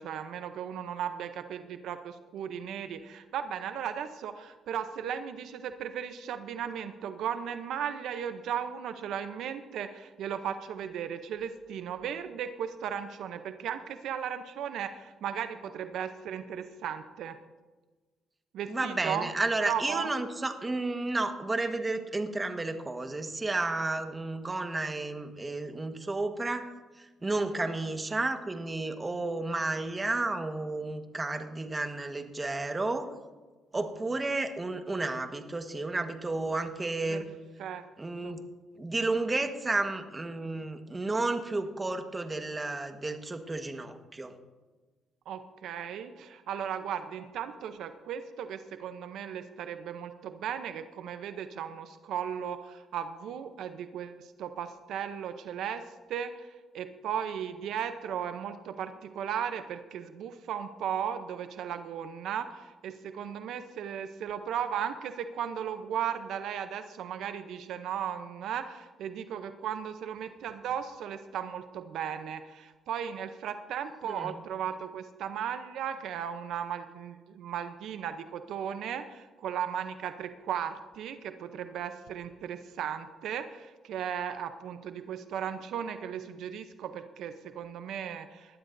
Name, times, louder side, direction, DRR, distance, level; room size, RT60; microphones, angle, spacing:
voice 1, 0.0-17.4 18.5-19.3 19.6-20.1 37.1-37.2 37.6-37.8 38.2-38.3 45.3-88.6, right 8 dB, 80° right, 9 dB, 0.7 m, -36 dB
voice 2, 18.7-26.6 27.0-33.1 33.7-37.3 38.0-38.4 38.8-44.3 74.0-74.4, right 2 dB, 20° right, 6 dB, 1.4 m, -32 dB
20.0 x 13.0 x 2.6 m, 1.3 s
cardioid pair, 90°, 0 cm